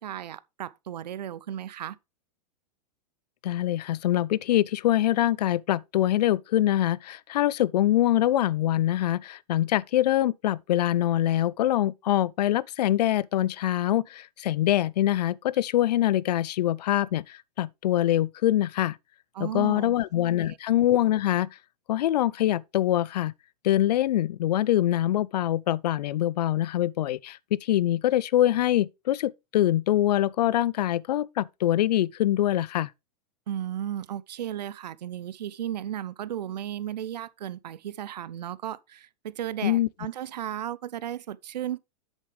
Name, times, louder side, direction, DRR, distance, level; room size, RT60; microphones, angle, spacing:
voice 1, 0.0-2.0 19.3-19.9 20.2-20.6 33.5-41.8, right 11 dB, 80° right, 0.6 m, -35 dB
voice 2, 3.4-19.0 19.4-21.5 21.9-23.3 23.6-32.9 39.6-39.9, left 13 dB, 70° left, 0.5 m, -24 dB
8.2 x 6.9 x 3.2 m
hypercardioid pair, 110°, 21 cm